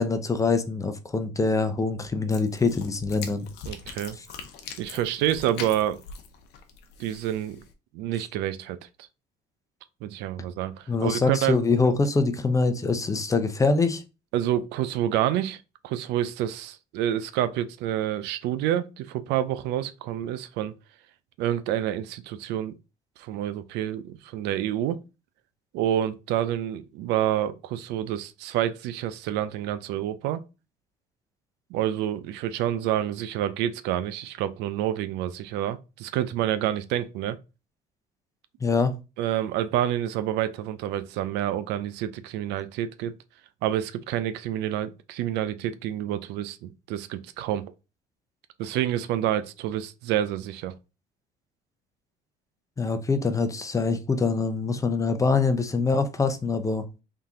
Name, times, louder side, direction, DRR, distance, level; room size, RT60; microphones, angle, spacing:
voice 1, 0.0-3.5 10.9-14.0 38.6-38.9 52.8-56.9, left 4 dB, 20° left, 0.6 m, -24 dB
sound 1, 2.3-7.7, left 6 dB, 80° left, 0.8 m, -42 dB
voice 2, 3.6-4.2 4.8-6.0 7.0-7.6 7.9-8.8 10.0-11.6 14.3-20.7 21.4-22.7 23.2-25.0 25.7-30.4 31.7-37.4 39.2-43.1 43.6-47.7 48.6-50.7, right 11 dB, 90° right, 0.4 m, -28 dB
3.7 x 2.7 x 3.7 m
cardioid pair, 110°, 17 cm